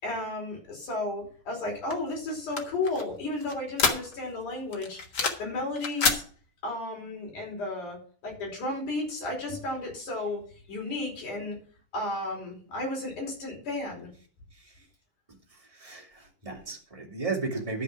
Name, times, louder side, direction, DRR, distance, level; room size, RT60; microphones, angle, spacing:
voice 1, 0.0-5.0 5.4-6.2 6.6-8.0 8.2-10.4 10.7-11.6 11.9-14.1, left 2 dB, 65° left, -1 dB, 6.5 m, -33 dB
sound 1, 1.9-4.4 4.7-5.5 5.8-6.2, left 4 dB, 50° left, 1.4 m, -28 dB
voice 2, 15.5-17.8, right 3 dB, 10° right, 0 dB, 1.9 m, -35 dB
12.0 x 5.7 x 6.0 m, 0.43 s
omnidirectional pair, 3.7 m